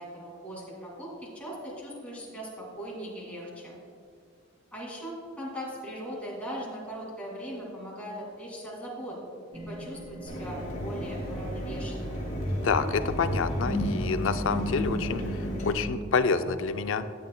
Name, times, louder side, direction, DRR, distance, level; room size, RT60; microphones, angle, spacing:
voice 1, 0.0-3.8 4.7-9.2 9.5-12.2, equal, 5° left, -4 dB, 2.3 m, -39 dB
sound 1, 9.5-15.9, equal, 20° right, 0.9 m, -35 dB
Mechanisms, 10.3-15.7, equal, 35° left, 1.7 m, -35 dB
voice 2, 12.6-17.0, left 5 dB, 70° left, 10 dB, 0.4 m, -28 dB
12.0 x 9.3 x 2.2 m, 2.2 s
head